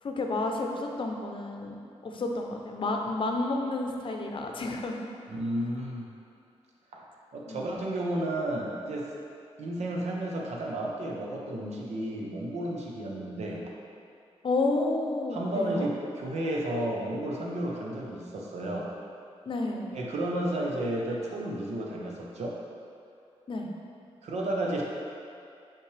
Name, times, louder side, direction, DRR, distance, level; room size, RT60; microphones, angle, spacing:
voice 1, 0.0-5.0 7.5-7.7 14.4-15.9 19.5-20.0 23.5-23.7, left 2 dB, 50° left, 2 dB, 0.6 m, -31 dB
voice 2, 5.3-6.1 6.9-7.0 7.3-9.1 9.6-13.6 15.3-18.9 19.9-22.6 24.2-24.8, right 1 dB, 85° right, -2 dB, 0.9 m, -32 dB
5.7 x 5.1 x 3.3 m, 2.5 s
wide cardioid pair, 100°, 11 cm